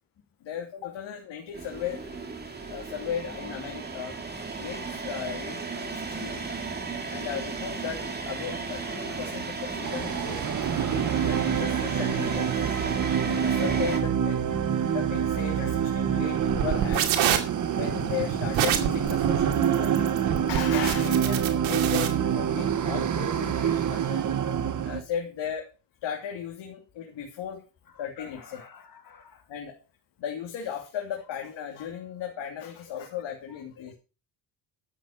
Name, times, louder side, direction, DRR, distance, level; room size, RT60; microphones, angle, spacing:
voice 1, 0.4-2.0 2.7-4.2 4.6-6.4 7.1-10.5 10.8-12.5 13.2-14.4 14.9-17.3 17.7-20.1 20.5-24.3 24.8-25.7 26.0-27.6 28.0-28.6 29.5-29.7 30.2-33.9, left 8 dB, 70° left, 1 dB, 3.1 m, -36 dB
sound 1, 1.5-14.0, right 4 dB, 20° right, 2.4 m, -34 dB
voice 2, 8.7-9.8 14.8-15.0 28.2-29.4 32.6-32.7 33.5-33.6, left 6 dB, 45° left, 7 dB, 2.1 m, -50 dB
sound 2, 9.8-25.0, right 8 dB, 40° right, 1.4 m, -26 dB
sound 3, 16.5-22.1, right 10 dB, 90° right, 2.5 m, -27 dB
12.5 x 8.3 x 5.2 m, 0.33 s
cardioid pair, 125°, 46 cm